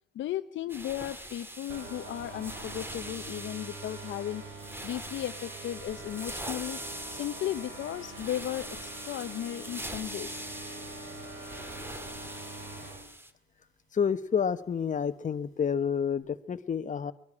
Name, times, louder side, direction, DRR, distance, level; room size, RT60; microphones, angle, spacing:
voice 1, 0.1-4.4 4.8-6.8 7.1-10.4, left 12 dB, 75° left, 10 dB, 0.8 m, -35 dB
sound 1, 0.7-13.3, right 1 dB, 10° right, 1.9 m, -43 dB
sound 2, 1.7-13.1, right 3 dB, 85° right, 5.1 m, -44 dB
voice 2, 13.9-17.1, left 7 dB, 40° left, 10 dB, 1.2 m, -29 dB
22.5 x 12.0 x 9.9 m, 0.71 s
cardioid pair, 90°, 20 cm